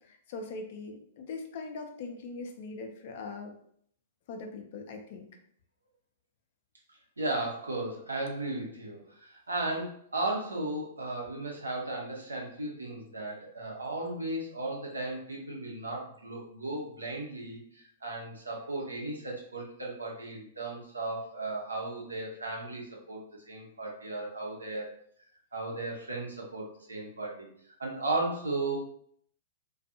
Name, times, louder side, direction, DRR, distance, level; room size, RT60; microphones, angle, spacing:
voice 1, 0.0-3.5 4.3-5.3, left 3 dB, 55° left, 3 dB, 0.5 m, -41 dB
voice 2, 7.2-24.9 25.5-27.5 27.8-28.8, right 2 dB, 85° right, -2 dB, 0.8 m, -35 dB
2.5 x 2.4 x 2.7 m, 0.64 s
figure-of-eight pair, 105°, 0 cm